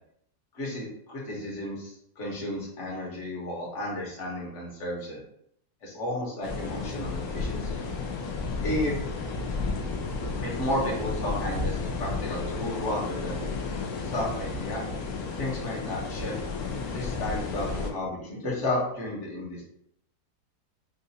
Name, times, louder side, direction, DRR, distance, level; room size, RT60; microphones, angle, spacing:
voice 1, 0.5-5.2 5.8-7.8 8.6-8.9 10.4-13.4 14.0-14.8 15.4-16.4 16.9-19.6, left 1 dB, 50° left, -4 dB, 1.5 m, -33 dB
sound 1, 6.4-17.9, left 4 dB, 70° left, 1.1 m, -32 dB
6.0 x 2.5 x 2.7 m, 0.69 s
omnidirectional pair, 1.8 m